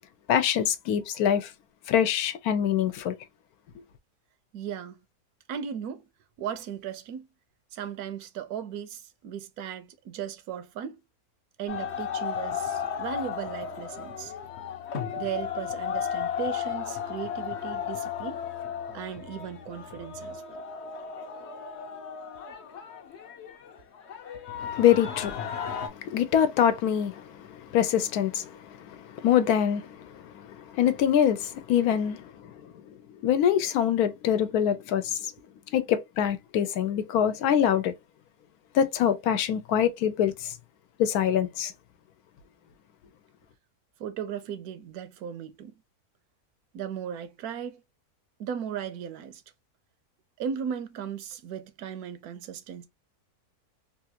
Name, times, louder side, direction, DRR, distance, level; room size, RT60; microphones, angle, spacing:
voice 1, 0.3-1.5 1.9-3.1 24.6-32.6 33.2-35.2 35.7-37.9 38.7-40.5 41.0-41.7, left 9 dB, 80° left, 1.1 m, -25 dB
voice 2, 4.5-5.0 5.5-6.1 6.4-7.3 7.7-11.0 11.6-14.3 15.2-18.4 18.9-20.6 44.0-45.7 46.7-47.8 48.4-49.4 50.4-52.9, right 8 dB, 80° right, 1.1 m, -36 dB
sound 1, 11.7-25.9, left 8 dB, 60° left, 0.8 m, -35 dB
3.1 x 2.5 x 2.7 m
omnidirectional pair, 1.6 m